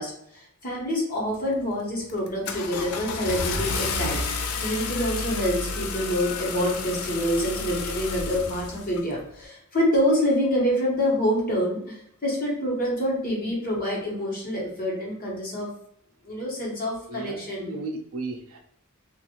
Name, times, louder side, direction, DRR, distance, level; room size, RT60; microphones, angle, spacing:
voice 1, 0.0-4.2 4.6-15.7 16.2-17.7, equal, 40° left, -4 dB, 1.2 m, -26 dB
Car / Engine starting, 1.3-1.6 2.1-9.1, left 4 dB, 80° left, 0.5 m, -31 dB
voice 2, 17.1-18.6, right 2 dB, 65° right, 3 dB, 0.6 m, -35 dB
3.2 x 2.5 x 2.9 m, 0.71 s
head